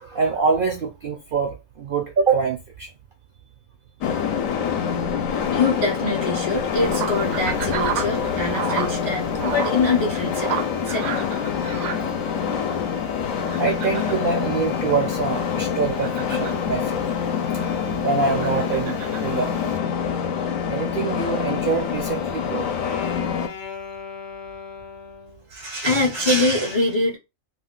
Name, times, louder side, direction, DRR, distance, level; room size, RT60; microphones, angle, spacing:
voice 1, 0.0-2.9 13.6-17.0 18.0-19.5 20.7-22.7 23.4-23.5, right 5 dB, 65° right, 0.5 m, -25 dB
sound 1, 4.0-23.5, left 7 dB, 75° left, 1.0 m, -26 dB
voice 2, 5.5-11.2 25.5-27.2, left 2 dB, 40° left, 0.4 m, -24 dB
sound 2, 6.7-19.8, right 8 dB, 80° right, 1.0 m, -34 dB
Wind instrument woodwind instrument, 20.9-25.5, left 5 dB, 60° left, 0.8 m, -37 dB
2.6 x 2.4 x 3.6 m
omnidirectional pair, 1.4 m